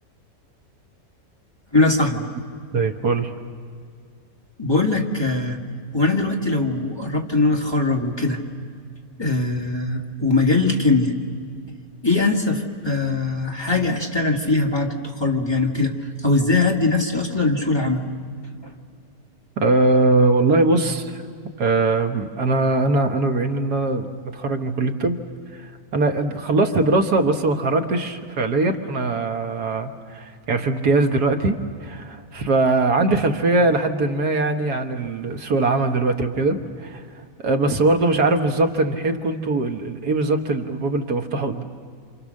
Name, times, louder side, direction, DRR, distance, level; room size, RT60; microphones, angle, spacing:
voice 1, 1.7-2.3 4.6-5.6 5.9-8.4 9.2-11.2 12.0-18.0 18.6-18.7, left 3 dB, 15° left, 0 dB, 1.9 m, -21 dB
voice 2, 2.7-3.4 19.6-21.2 21.6-25.2 25.5-25.6 25.9-37.0 37.4-41.6, right 2 dB, 85° right, 5 dB, 1.9 m, -21 dB
28.0 x 27.5 x 6.5 m, 2.1 s
omnidirectional pair, 1.7 m